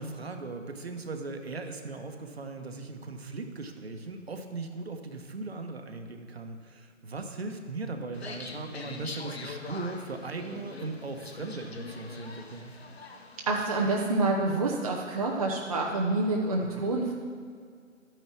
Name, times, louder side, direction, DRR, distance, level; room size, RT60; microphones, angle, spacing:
voice 1, 0.0-12.7 16.6-16.9, right 3 dB, 50° right, 5 dB, 1.3 m, -38 dB
sound 1, 8.1-13.5, left 3 dB, 50° left, 1.4 m, -43 dB
voice 2, 13.5-17.1, right 2 dB, 25° right, -2 dB, 0.8 m, -27 dB
13.0 x 9.3 x 4.6 m, 2.1 s
figure-of-eight pair, 155°, 40 cm